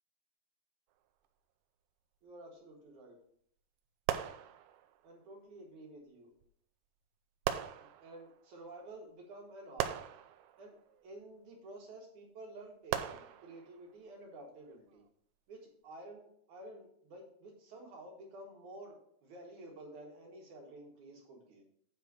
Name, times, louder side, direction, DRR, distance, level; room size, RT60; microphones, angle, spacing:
voice 1, 2.2-3.2 5.0-6.3 7.8-9.9 10.6-10.8 11.0-15.0 15.5-21.6, right 2 dB, 55° right, -1 dB, 2.9 m, -51 dB
sound 1, 4.1-5.1 6.4-6.5 7.5-8.5 9.8-11.1 12.9-13.9 14.7-14.9, right 11 dB, 80° right, 2.3 m, -39 dB
8.5 x 4.5 x 6.0 m, 0.65 s
omnidirectional pair, 4.5 m